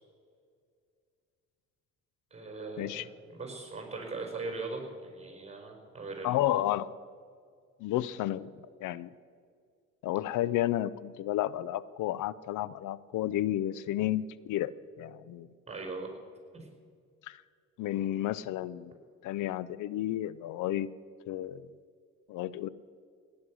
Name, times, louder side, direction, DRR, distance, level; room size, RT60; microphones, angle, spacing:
voice 1, 2.3-6.6 15.7-16.1 16.5-16.7, right 3 dB, 20° right, 2 dB, 4.7 m, -40 dB
voice 2, 6.2-6.9 7.8-8.5 8.8-9.1 10.0-14.7 15.0-15.5 17.3-17.4 17.8-18.9 19.2-20.9 21.3-21.7 22.3-22.7, left 13 dB, 80° left, 18 dB, 0.5 m, -31 dB
17.5 x 9.5 x 6.2 m, 2.2 s
cardioid pair, 90°, 30 cm